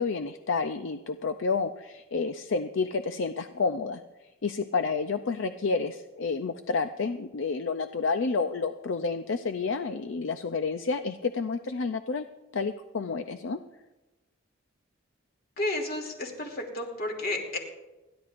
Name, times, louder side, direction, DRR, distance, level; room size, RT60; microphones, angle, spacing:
voice 1, 0.0-4.0 4.4-12.2 12.5-13.6, left 4 dB, 70° left, 9 dB, 0.5 m, -30 dB
voice 2, 15.6-17.6, left 1 dB, 50° left, 1 dB, 2.7 m, -32 dB
29.5 x 11.0 x 2.5 m, 1.1 s
head